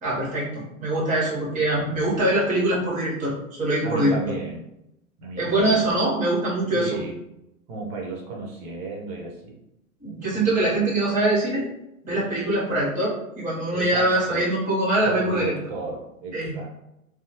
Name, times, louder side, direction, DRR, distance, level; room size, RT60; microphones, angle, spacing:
voice 1, 0.0-3.3 3.6-4.1 5.4-6.9 10.0-11.6 12.0-15.5 16.3-16.5, right 1 dB, 20° right, -6 dB, 1.1 m, -23 dB
voice 2, 3.8-4.6 5.2-5.9 6.7-7.2 7.7-9.6 13.7-14.5 15.0-16.7, right 3 dB, 35° right, -2 dB, 0.8 m, -33 dB
2.7 x 2.1 x 2.9 m, 0.86 s
figure-of-eight pair, 100°, 42 cm